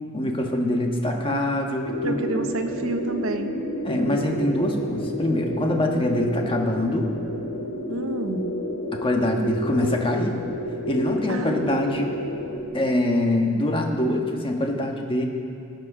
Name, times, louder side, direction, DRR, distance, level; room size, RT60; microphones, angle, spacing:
voice 1, 0.1-2.2 3.8-7.1 8.9-10.4 10.9-12.1 12.7-15.2, left 1 dB, 25° left, 2 dB, 1.4 m, -24 dB
voice 2, 1.2-1.6 2.0-3.6 7.9-8.5 11.3-12.2, right 2 dB, 70° right, 6 dB, 1.1 m, -30 dB
sound 1, 1.8-12.6, equal, 85° left, 2.2 m, -30 dB
18.0 x 7.7 x 6.2 m, 2.6 s
head